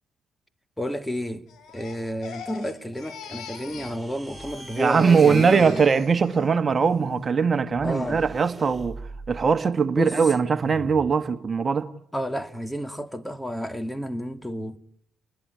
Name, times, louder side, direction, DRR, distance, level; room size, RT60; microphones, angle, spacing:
voice 1, 0.8-1.4 1.7-5.8 7.8-8.2 9.9-10.2 12.1-14.8, equal, 10° left, 2.4 m, -31 dB
Crying sobbing, 1.5-4.0 4.3-6.5 6.8-7.2, left 6 dB, 65° left, 4.9 m, -42 dB
sound 1, 3.7-9.6 10.5-11.2, right 2 dB, 10° right, 4.2 m, -42 dB
voice 2, 4.8-9.0 9.3-11.9, right 5 dB, 40° right, 1.6 m, -21 dB
30.0 x 20.5 x 9.7 m
hypercardioid pair, 50°, 0 cm